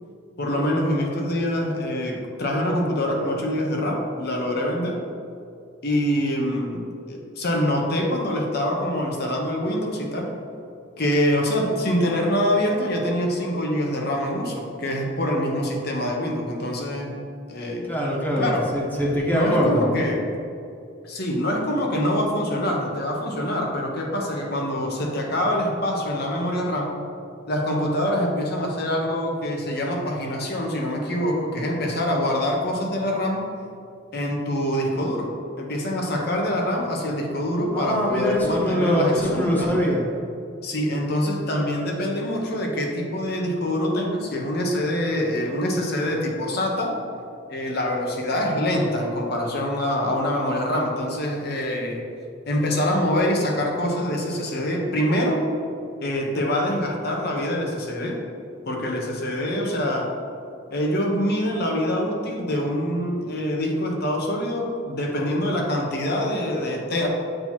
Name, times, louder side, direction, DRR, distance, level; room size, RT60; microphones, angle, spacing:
voice 1, 0.4-5.0 5.8-10.3 11.0-17.2 17.5-17.9 18.4-18.7 19.3-20.2 21.0-27.0 27.5-33.4 34.1-39.8 40.6-47.0 47.5-52.0 52.5-55.4 56.0-58.2 58.7-60.1 60.7-67.1, left 1 dB, 55° left, 0 dB, 0.9 m, -25 dB
voice 2, 17.9-19.9 37.7-40.1, equal, 10° left, -4 dB, 1.0 m, -23 dB
7.7 x 2.9 x 4.4 m, 2.4 s
head